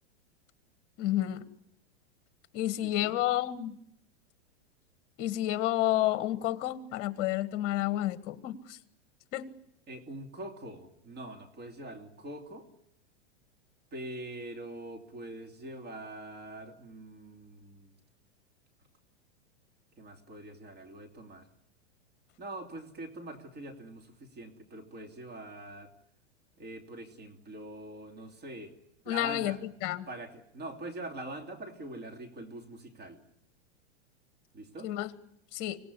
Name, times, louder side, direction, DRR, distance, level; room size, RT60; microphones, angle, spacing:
voice 1, 1.0-1.4 2.5-3.8 5.2-8.8 9.3-9.5 29.1-30.1 34.8-35.1 35.5-35.8, left 14 dB, 40° left, 14 dB, 1.5 m, -30 dB
voice 2, 2.8-3.2 9.9-12.7 13.9-18.0 20.0-21.5 22.4-25.9 26.6-28.7 29.0-29.6 30.1-33.2 34.5-34.9, right 1 dB, 30° right, 5 dB, 2.9 m, -44 dB
25.5 x 17.5 x 9.8 m, 0.77 s
supercardioid pair, 145°, 35 cm